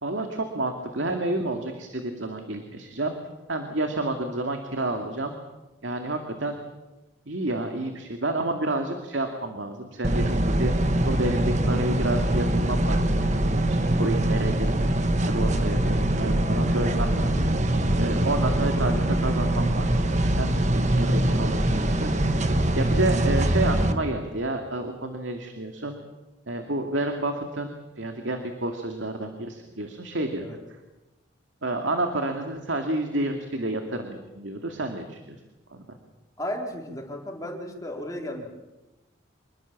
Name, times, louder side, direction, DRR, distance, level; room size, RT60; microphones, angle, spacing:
voice 1, 0.0-3.1 3.5-5.3 5.8-6.6 7.3-10.7 11.1-14.7 15.3-22.5 22.7-26.0 26.5-30.4 31.6-35.4 35.7-35.8, right 2 dB, 75° right, 5 dB, 2.3 m, -30 dB
sound 1, 10.0-23.9, right 1 dB, 35° right, 1.6 m, -23 dB
voice 2, 36.4-38.5, left 1 dB, 15° left, 1 dB, 4.1 m, -34 dB
26.5 x 21.5 x 7.3 m, 1.0 s
head